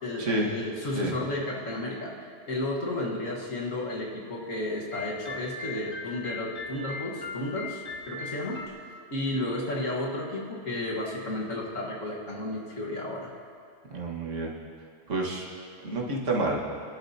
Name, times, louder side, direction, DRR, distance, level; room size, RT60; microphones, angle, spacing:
voice 1, 0.0-8.6 9.1-13.3, left 1 dB, 75° left, -3 dB, 1.9 m, -33 dB
sound 1, 4.9-8.7, left 4 dB, 45° left, 1.3 m, -39 dB
voice 2, 13.9-14.5 15.1-15.5 15.8-16.6, right 2 dB, 65° right, -2 dB, 1.9 m, -29 dB
23.5 x 12.0 x 2.8 m, 2.3 s
omnidirectional pair, 1.3 m